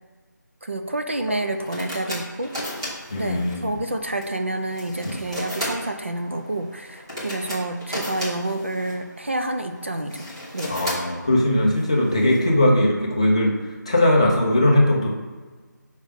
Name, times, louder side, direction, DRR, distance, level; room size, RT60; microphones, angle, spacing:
voice 1, 0.6-2.5 3.2-10.3 10.5-10.8, right 1 dB, 40° right, 5 dB, 0.3 m, -28 dB
sound 1, 1.2-12.4, left 1 dB, 15° right, 0.8 m, -35 dB
voice 2, 3.1-3.8 5.0-5.2 10.7-13.5 13.9-15.1, left 1 dB, 20° left, -2 dB, 0.6 m, -19 dB
5.5 x 4.8 x 3.5 m, 1.4 s
figure-of-eight pair, 180°, 10 cm